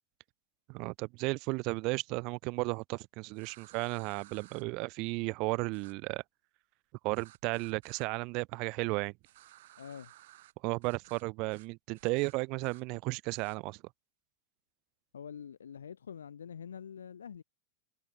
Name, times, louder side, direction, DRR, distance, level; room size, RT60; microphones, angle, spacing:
voice 1, 0.7-6.2 7.0-9.1 10.6-13.8, right 26 dB, 50° right, 1.9 m, -34 dB
sound 1, 3.3-4.6 5.7-5.9 7.1-8.1 9.2-10.5 10.8-11.2 11.5-11.7 11.9-12.8 13.3-13.6, right 15 dB, 65° right, 3.6 m, -57 dB
voice 2, 9.8-10.1 15.1-17.4, left 7 dB, 80° left, 3.9 m, -45 dB
hypercardioid pair, 95°, 0 cm